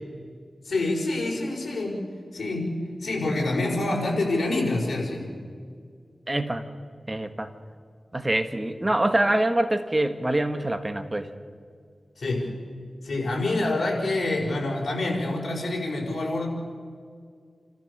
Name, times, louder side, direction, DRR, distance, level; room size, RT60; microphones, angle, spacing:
voice 1, 0.6-2.0 2.3-5.3 12.2-12.5 13.0-16.5, left 2 dB, 75° left, -2 dB, 5.3 m, -27 dB
voice 2, 6.3-6.6 7.1-7.5 8.1-11.3, right 1 dB, 25° right, 8 dB, 1.5 m, -25 dB
29.5 x 14.0 x 6.8 m, 2.1 s
wide cardioid pair, 70°, 0 cm